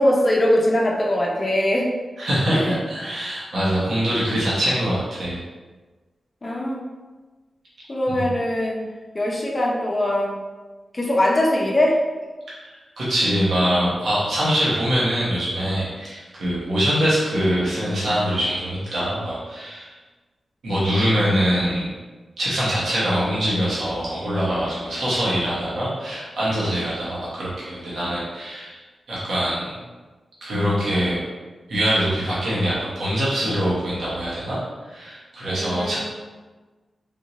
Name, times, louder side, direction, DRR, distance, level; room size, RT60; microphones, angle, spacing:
voice 1, 0.0-1.9 2.5-2.7 6.4-6.8 7.9-8.9 9.1-10.4 10.9-12.0 35.5-36.0, left 1 dB, 30° left, -2 dB, 0.6 m, -21 dB
voice 2, 2.2-5.4 12.6-20.0 20.6-21.9 22.4-28.8 29.1-29.8 30.4-31.2 31.7-34.6 34.9-36.0, equal, 85° right, -9 dB, 1.1 m, -23 dB
3.6 x 2.6 x 2.9 m, 1.3 s
wide cardioid pair, 110°, 0 cm